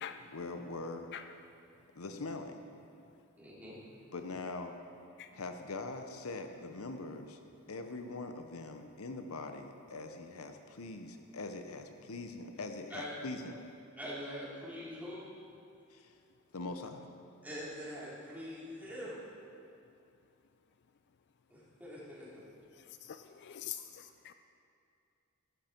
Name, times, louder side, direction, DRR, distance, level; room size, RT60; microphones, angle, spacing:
voice 1, 0.3-1.1 1.9-2.6 4.1-4.8 5.3-7.4 7.7-13.6 15.9-16.1 16.5-17.1, left 3 dB, 75° left, 6 dB, 0.9 m, -42 dB
voice 2, 3.4-3.8 12.9-13.1 14.0-15.3 17.4-19.2 21.5-22.4, equal, 10° right, -9 dB, 3.8 m, -44 dB
voice 3, 22.8-24.3, left 10 dB, 50° left, 10 dB, 0.4 m, -45 dB
15.5 x 12.0 x 4.5 m, 2.6 s
head